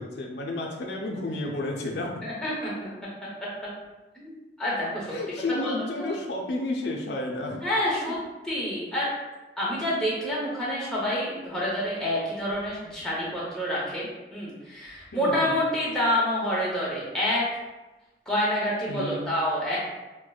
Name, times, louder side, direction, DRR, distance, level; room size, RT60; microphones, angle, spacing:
voice 1, 0.0-2.3 5.1-7.6 15.1-15.6 18.9-19.3, left 2 dB, 75° left, 0 dB, 0.4 m, -31 dB
voice 2, 2.2-2.7 3.4-3.5 4.1-4.3 4.6-5.2 5.5-5.7 6.0-6.1 7.6-8.2 8.4-9.1 9.6-17.5 18.3-19.8, left 1 dB, 5° left, -7 dB, 0.8 m, -28 dB
4.5 x 2.1 x 2.3 m, 1.1 s
head